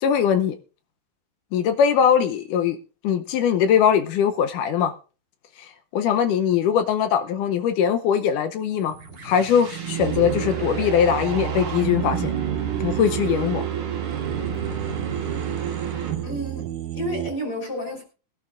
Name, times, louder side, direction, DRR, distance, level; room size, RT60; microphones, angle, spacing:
voice 1, 0.0-0.6 1.5-2.8 3.0-4.9 5.6-9.0 9.2-12.3 12.8-13.6, left 8 dB, 75° left, 2.1 m, -21 dB
sound 1, 8.7-16.6, right 7 dB, 45° right, 1.9 m, -30 dB
sound 2, 10.0-17.3, right 14 dB, 80° right, 2.7 m, -31 dB
voice 2, 16.2-16.7 16.9-18.0, equal, 30° left, 3.4 m, -30 dB
21.0 x 11.5 x 2.5 m
omnidirectional pair, 4.2 m